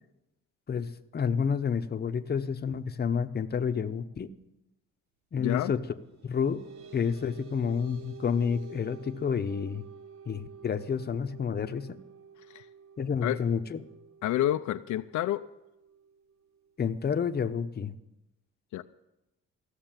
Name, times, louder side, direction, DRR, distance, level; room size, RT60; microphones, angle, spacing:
voice 1, 0.7-4.3 5.3-5.8 6.2-6.6 6.9-9.8 10.3-12.0 13.0-13.8 16.8-17.9, left 6 dB, 35° left, 0.8 m, -29 dB
voice 2, 5.4-5.7 12.5-12.6 13.2-13.4 14.2-15.4 18.7-18.8, left 13 dB, 70° left, 0.5 m, -28 dB
sound 1, 6.0-17.0, right 6 dB, 65° right, 1.1 m, -50 dB
15.0 x 6.7 x 8.9 m
cardioid pair, 90°, 30 cm